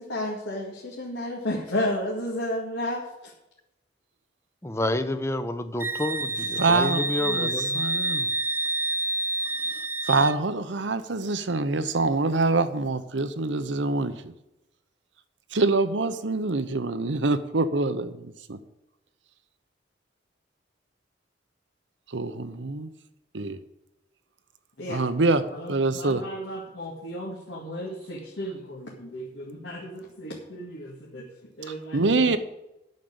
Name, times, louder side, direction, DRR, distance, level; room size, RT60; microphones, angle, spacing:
voice 1, 0.0-3.3 24.8-25.0 25.5-32.4, left 1 dB, 85° left, 2.1 m, -33 dB
voice 2, 4.6-7.8, left 1 dB, 15° left, 0.7 m, -29 dB
Wind instrument woodwind instrument, 5.8-10.4, right 2 dB, 15° right, 0.3 m, -28 dB
voice 3, 6.6-7.5 7.7-8.3 10.0-14.3 15.5-18.6 22.1-22.9 23.3-23.6 24.9-26.2 31.9-32.4, right 3 dB, 85° right, 0.9 m, -25 dB
9.4 x 6.6 x 8.7 m
head